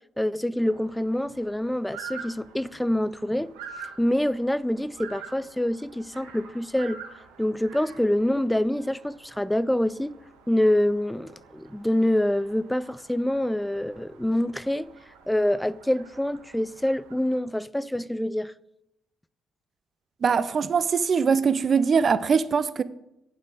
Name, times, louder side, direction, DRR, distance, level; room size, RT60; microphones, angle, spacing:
voice 1, 0.2-3.5 4.0-7.0 7.4-10.2 10.5-14.9 15.3-18.5, left 1 dB, 5° left, 0.4 m, -26 dB
sound 1, 0.6-17.4, right 6 dB, 80° right, 1.2 m, -47 dB
voice 2, 20.2-22.8, right 6 dB, 50° right, 0.5 m, -22 dB
8.7 x 6.6 x 5.0 m
hypercardioid pair, 45°, 0 cm